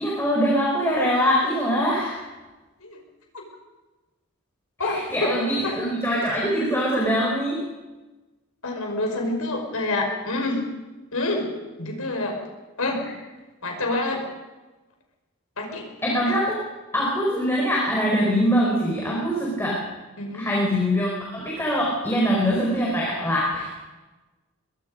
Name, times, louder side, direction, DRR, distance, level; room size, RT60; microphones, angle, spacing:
voice 1, 0.0-2.2 4.8-7.6 16.0-16.6 16.9-19.8 20.3-23.8, equal, 10° left, -4 dB, 4.7 m, -23 dB
voice 2, 4.8-5.3 5.6-5.8 8.6-10.6 11.1-11.5 11.8-12.4 12.8-13.1 13.6-14.3 15.6-15.9 17.0-17.1 20.2-20.5, left 2 dB, 85° left, 2 dB, 5.6 m, -27 dB
24.5 x 21.0 x 5.3 m, 1.2 s
head